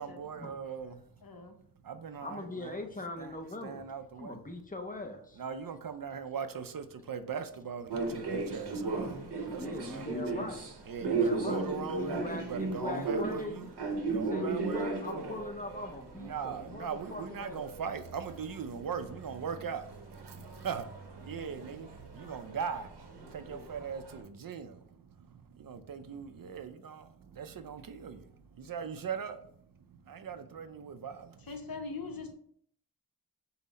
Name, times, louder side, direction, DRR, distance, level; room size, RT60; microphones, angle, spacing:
voice 1, 0.0-0.9 1.8-2.8 3.2-3.3 3.6-4.4 5.4-9.2 9.5-10.5 10.9-13.7 14.1-15.4 16.2-27.0 27.3-31.5, right 6 dB, 60° right, 0.5 m, -40 dB
voice 2, 1.2-1.5 31.5-32.3, left 4 dB, 60° left, 0.8 m, -41 dB
voice 3, 2.2-3.9 4.2-5.4 9.5-10.6 11.0-13.7 14.1-17.7 23.2-23.7, left 2 dB, 20° left, 0.6 m, -41 dB
sound 1, 7.9-18.8 19.0-24.2, right 3 dB, 85° right, 0.9 m, -36 dB
5.5 x 2.1 x 4.0 m
wide cardioid pair, 60°, 39 cm